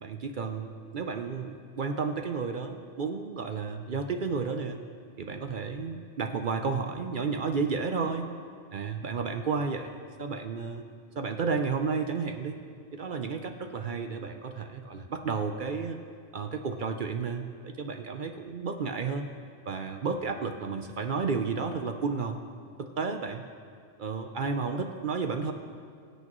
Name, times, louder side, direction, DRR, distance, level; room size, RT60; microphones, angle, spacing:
voice 1, 0.0-4.8 5.2-8.3 8.7-10.8 11.2-12.6 12.9-16.0 16.3-19.3 19.7-22.4 22.8-23.4 24.0-25.5, right 5 dB, 55° right, 5 dB, 0.7 m, -32 dB
23.0 x 8.2 x 3.0 m, 2.2 s
omnidirectional pair, 1.2 m